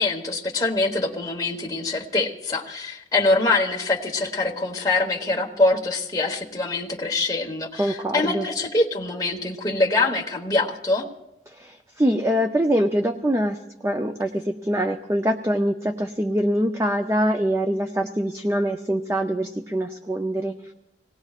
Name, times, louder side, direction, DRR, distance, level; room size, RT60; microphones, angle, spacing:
voice 1, 0.0-11.1, left 2 dB, 20° left, 0 dB, 1.2 m, -24 dB
voice 2, 7.8-8.5 11.5-13.6 13.8-20.6, equal, 15° right, 5 dB, 0.5 m, -24 dB
25.5 x 18.0 x 2.4 m, 0.89 s
head